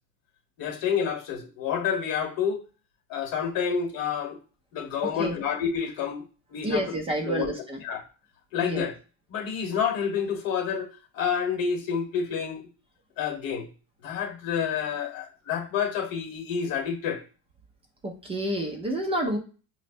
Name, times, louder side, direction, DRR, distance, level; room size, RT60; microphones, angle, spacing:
voice 1, 0.6-2.6 3.1-4.4 4.7-6.2 6.5-6.8 7.2-7.5 7.8-8.0 8.5-8.9 9.3-10.9 11.1-12.7 13.2-13.7 14.0-17.2, left 7 dB, 50° left, 1.1 m, -28 dB
voice 2, 5.0-5.4 6.6-7.8 8.6-8.9 18.0-19.4, right 1 dB, 15° right, 0.3 m, -29 dB
5.1 x 2.1 x 2.5 m
cardioid pair, 145°, 45 cm